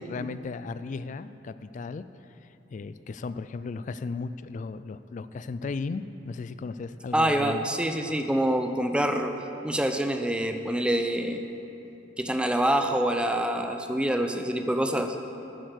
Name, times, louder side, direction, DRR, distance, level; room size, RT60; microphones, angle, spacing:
voice 1, 0.0-2.0 2.7-7.7, left 4 dB, 40° left, 13 dB, 0.3 m, -35 dB
voice 2, 7.1-9.3 9.6-11.4 12.2-15.2, right 1 dB, 5° right, 6 dB, 0.5 m, -26 dB
10.5 x 7.8 x 6.6 m, 2.9 s
head